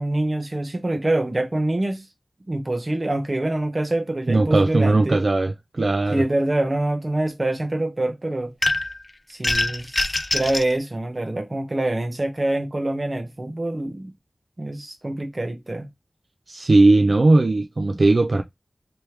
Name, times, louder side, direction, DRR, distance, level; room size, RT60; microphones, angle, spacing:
voice 1, 0.0-2.0 2.5-5.2 6.1-8.5 9.3-14.1 14.6-15.9, right 1 dB, 35° right, 0.9 m, -25 dB
voice 2, 4.3-6.2 16.5-18.4, right 2 dB, 60° right, 0.4 m, -18 dB
sound 1, 8.6-9.0 9.4-10.7, left 2 dB, 30° left, 0.3 m, -23 dB
3.4 x 3.0 x 3.1 m
wide cardioid pair, 70°, 0 cm